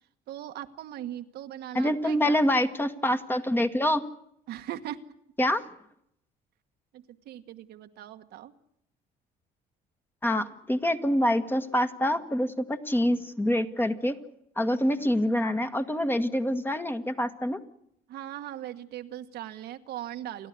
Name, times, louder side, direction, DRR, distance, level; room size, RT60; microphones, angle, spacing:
voice 1, 0.3-2.4 4.5-5.0 6.9-8.5 18.1-20.5, right 12 dB, 75° right, 7 dB, 1.5 m, -39 dB
voice 2, 1.7-4.0 5.4-5.6 10.2-14.2 14.6-17.6, left 1 dB, 10° left, 8 dB, 1.6 m, -26 dB
30.0 x 11.5 x 9.6 m, 0.75 s
cardioid pair, 110°, 17 cm